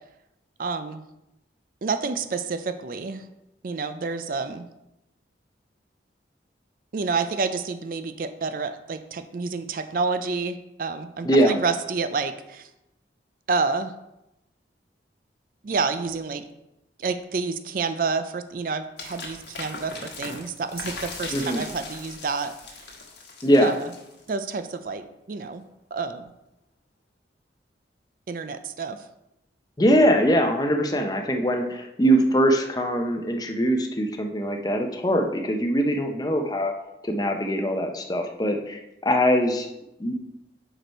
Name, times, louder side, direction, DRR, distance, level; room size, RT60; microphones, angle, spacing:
voice 1, 0.6-1.0 1.8-3.3 3.6-4.7 6.9-12.7 13.5-13.9 15.6-16.4 17.0-22.5 23.6-23.9 24.3-25.6 25.9-26.3 28.3-29.0, right 4 dB, 50° right, 10 dB, 0.4 m, -29 dB
voice 2, 11.2-11.6 21.3-21.6 23.4-23.7 29.8-36.7 37.0-39.7 40.0-40.1, equal, 20° left, 4 dB, 0.6 m, -22 dB
sound 1, 19.0-24.5, left 3 dB, 75° left, 1.4 m, -39 dB
6.0 x 5.3 x 4.4 m, 0.89 s
head